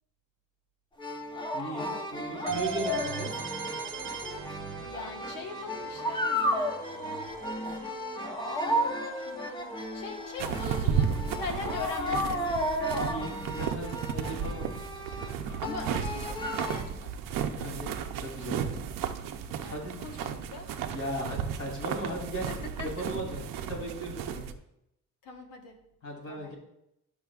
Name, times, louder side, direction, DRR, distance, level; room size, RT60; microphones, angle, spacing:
sound 1, 1.0-16.8, equal, 15° left, 0.8 m, -33 dB
voice 1, 1.5-3.3 13.0-14.7 17.6-17.9 18.2-18.7 19.7-19.9 20.9-22.5 22.8-23.4 23.7-24.5 26.0-26.5, right 1 dB, 45° left, -2 dB, 3.0 m, -37 dB
sound 2, 2.5-12.2, right 7 dB, 40° right, 0.8 m, -44 dB
voice 2, 4.8-6.8 7.4-12.6 15.4-17.1 19.6-20.7 22.5-22.9 25.2-25.8 26.3-26.5, left 5 dB, 80° left, 3 dB, 1.3 m, -42 dB
sound 3, 10.4-24.5, right 7 dB, 90° right, 0.7 m, -34 dB
11.5 x 6.3 x 2.4 m, 0.79 s
cardioid pair, 140°, 32 cm